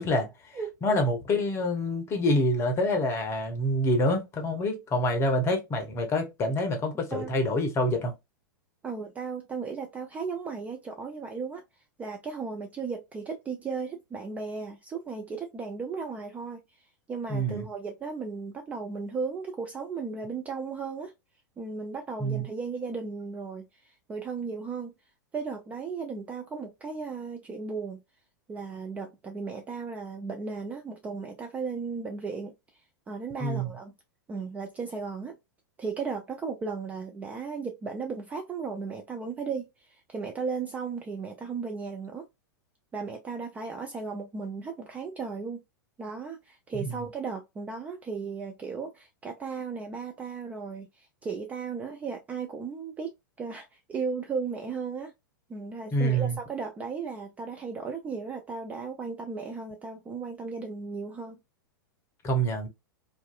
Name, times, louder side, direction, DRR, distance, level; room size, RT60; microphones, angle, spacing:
voice 1, 0.0-8.1 17.3-17.7 22.2-22.4 33.4-33.7 46.8-47.0 55.9-56.4 62.2-62.7, equal, 25° left, 0.7 m, -27 dB
voice 2, 0.5-1.0 7.1-7.3 8.8-11.6 12.0-16.6 17.1-21.1 21.6-24.9 25.3-28.0 28.5-32.5 33.1-33.9 34.3-35.4 35.8-42.3 42.9-45.6 46.0-55.1 55.5-61.4, right 5 dB, 15° right, 0.3 m, -35 dB
2.5 x 2.2 x 2.3 m
figure-of-eight pair, 95°, 11 cm